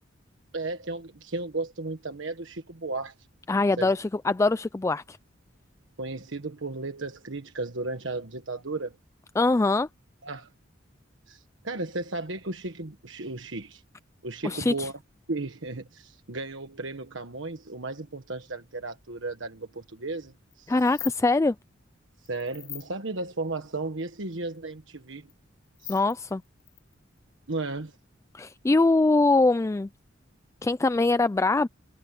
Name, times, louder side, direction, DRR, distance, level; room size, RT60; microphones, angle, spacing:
voice 1, 0.5-3.1 3.8-4.0 6.0-9.0 10.2-10.5 11.3-13.8 14.2-15.0 15.3-20.8 22.3-25.3 25.8-26.0 27.5-28.0, right 3 dB, 75° right, 1.4 m, -34 dB
voice 2, 3.5-5.2 9.4-9.9 14.4-14.9 20.7-21.5 25.9-26.4 28.3-29.9 30.6-31.7, left 3 dB, 15° left, 0.3 m, -23 dB
sound 1, 20.5-20.6 20.8-21.2 22.3-22.9 24.0-24.1 24.3-24.4 25.2-25.3 25.6-27.2, left 16 dB, 55° left, 4.0 m, -40 dB
head